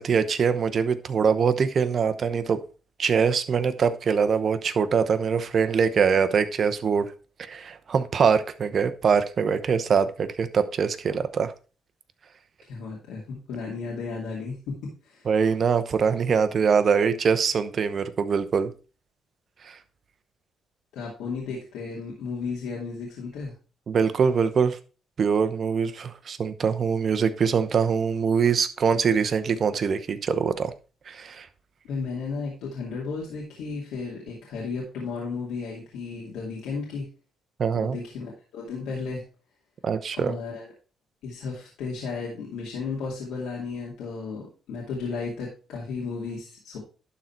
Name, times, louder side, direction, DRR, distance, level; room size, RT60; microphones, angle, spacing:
voice 1, 0.0-2.6 3.0-7.1 7.4-11.5 15.3-18.7 19.7-19.8 23.9-24.8 25.2-30.7 31.1-31.5 37.6-38.0 39.8-40.3, right 6 dB, 50° right, 0.9 m, -23 dB
voice 2, 12.6-15.3 20.9-23.5 31.8-37.1 37.7-39.2 40.1-40.7 41.2-46.8, left 4 dB, 90° left, 2.3 m, -34 dB
11.5 x 4.0 x 4.5 m
cardioid pair, 90°, 0 cm